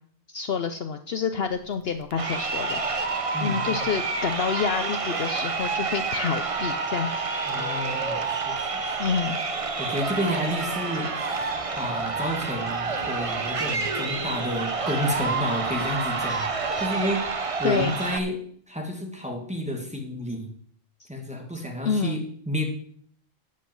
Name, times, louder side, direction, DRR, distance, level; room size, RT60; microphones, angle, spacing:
voice 1, 0.3-3.0 3.4-7.3 9.0-9.4 17.6-17.9 21.0-21.1 21.8-22.2, left 6 dB, 60° left, 8 dB, 0.8 m, -28 dB
Crowd, 2.1-18.2, right 4 dB, 30° right, 0.8 m, -28 dB
voice 2, 3.3-3.8 7.5-9.0 9.8-11.5 11.8-16.5 16.8-17.3 17.6-20.5 21.1-22.6, equal, 5° right, 1 dB, 1.9 m, -31 dB
12.0 x 5.5 x 7.9 m, 0.62 s
omnidirectional pair, 1.2 m